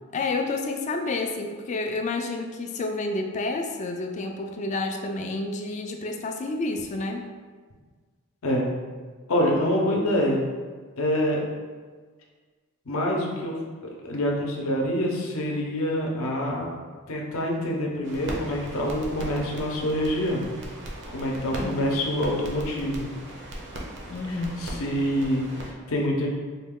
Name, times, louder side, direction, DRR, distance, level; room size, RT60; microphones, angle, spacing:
voice 1, 0.1-7.2 21.5-21.8 24.1-24.7, left 3 dB, 35° left, 4 dB, 0.3 m, -29 dB
voice 2, 9.3-10.4 11.0-11.4 12.9-13.5 13.8-16.7 17.1-20.5 21.1-23.1 24.3-26.3, equal, 70° left, -1 dB, 0.7 m, -26 dB
sound 1, 18.0-25.7, right 1 dB, 55° right, 0.6 m, -38 dB
4.0 x 2.2 x 3.6 m, 1.5 s
head